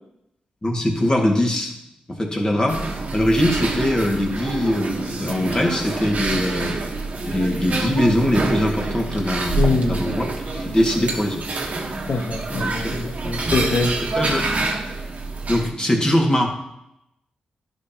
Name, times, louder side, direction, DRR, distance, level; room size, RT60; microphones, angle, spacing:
voice 1, 0.6-1.7 2.1-2.9 3.1-6.7 7.2-11.5 12.5-13.0 14.1-14.5 15.5-16.5, left 1 dB, 25° left, 0 dB, 2.0 m, -22 dB
sound 1, 2.7-15.7, right 3 dB, 55° right, 1.2 m, -27 dB
voice 2, 9.5-10.2 12.1-13.9, left 3 dB, 60° left, 5 dB, 1.1 m, -23 dB
11.0 x 5.3 x 2.9 m, 0.83 s
supercardioid pair, 40°, 3 cm